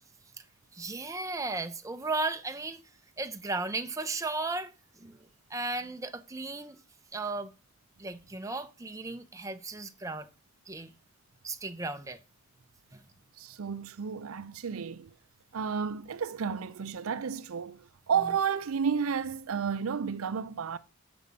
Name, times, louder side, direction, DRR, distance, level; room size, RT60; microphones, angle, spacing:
voice 1, 0.7-2.8 3.2-4.7 5.0-6.8 7.1-7.5 8.0-10.3 10.7-10.9 11.4-12.2 12.9-13.1, right 3 dB, 15° right, 0.7 m, -35 dB
voice 2, 13.4-15.1 15.5-20.8, right 6 dB, 90° right, 0.5 m, -32 dB
6.6 x 6.1 x 6.8 m
head